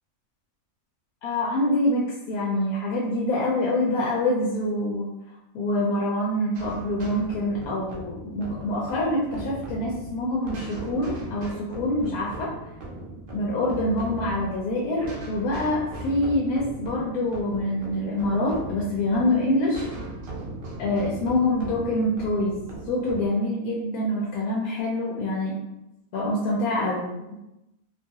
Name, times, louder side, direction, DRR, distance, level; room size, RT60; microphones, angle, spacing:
voice 1, 1.2-5.1 5.5-12.5 13.3-19.9 20.8-25.6 26.1-27.1, left 1 dB, 85° left, -4 dB, 1.1 m, -25 dB
sound 1, 6.5-23.3, right 1 dB, 60° right, 0.5 m, -38 dB
2.6 x 2.3 x 2.7 m, 0.94 s
omnidirectional pair, 1.5 m